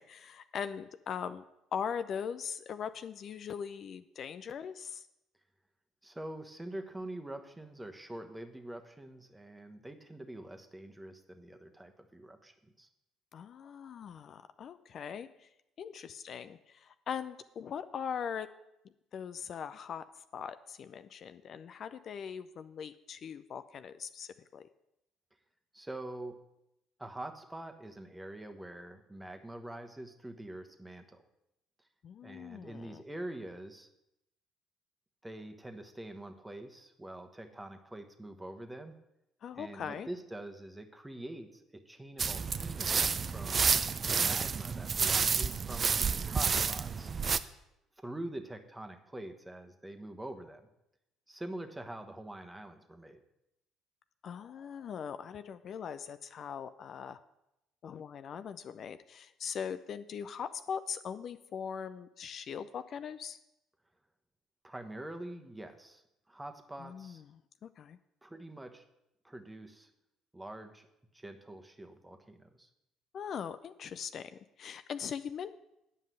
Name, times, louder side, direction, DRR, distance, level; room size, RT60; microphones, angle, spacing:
voice 1, 0.0-1.4 1.7-5.1 13.3-15.5 15.8-18.5 19.1-20.0 20.3-24.7 32.0-33.0 39.4-40.1 54.2-57.2 57.8-63.4 66.8-67.2 67.6-68.0 73.1-74.3 74.6-75.5, left 7 dB, 50° left, 12 dB, 0.4 m, -40 dB
voice 2, 6.0-12.9 25.7-26.4 27.0-31.2 32.2-33.9 35.2-39.0 39.6-43.8 44.1-47.1 48.0-50.7 51.3-53.2 64.6-67.2 68.2-68.8 69.2-69.9 70.3-70.9 71.1-72.7, right 1 dB, 10° right, 6 dB, 1.2 m, -45 dB
sound 1, 42.2-47.4, right 5 dB, 40° right, 0.5 m, -30 dB
9.2 x 5.6 x 7.7 m, 0.86 s
hypercardioid pair, 55°, 0 cm